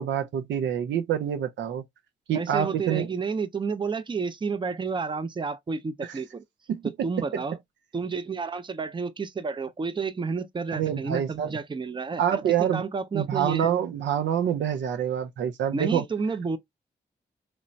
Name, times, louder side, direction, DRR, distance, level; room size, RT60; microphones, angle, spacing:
voice 1, 0.0-1.8 2.3-3.1 6.7-6.8 7.3-7.4 10.7-11.5 12.2-12.8 13.1-16.0, right 9 dB, 80° right, 0.4 m, -26 dB
voice 2, 2.3-6.4 6.8-7.6 7.9-13.7 15.7-16.6, right 4 dB, 25° right, 0.4 m, -31 dB
3.1 x 2.0 x 2.5 m
supercardioid pair, 40°, 19 cm